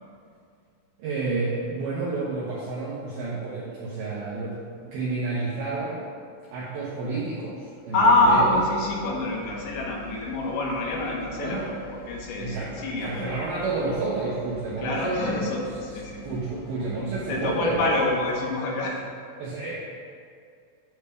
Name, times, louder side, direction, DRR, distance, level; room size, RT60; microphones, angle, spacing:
voice 1, 1.0-6.0 6.5-8.4 11.3-11.7 12.4-15.6 16.2-17.9 19.4-19.7, right 3 dB, 80° right, -7 dB, 2.2 m, -30 dB
voice 2, 7.9-11.6 11.9-13.5 14.8-16.2 17.3-19.0, left 2 dB, 85° left, -2 dB, 3.9 m, -25 dB
sound 1, 7.9-18.3, left 3 dB, 70° left, 3.5 m, -47 dB
9.5 x 3.4 x 6.9 m, 2.3 s
omnidirectional pair, 5.7 m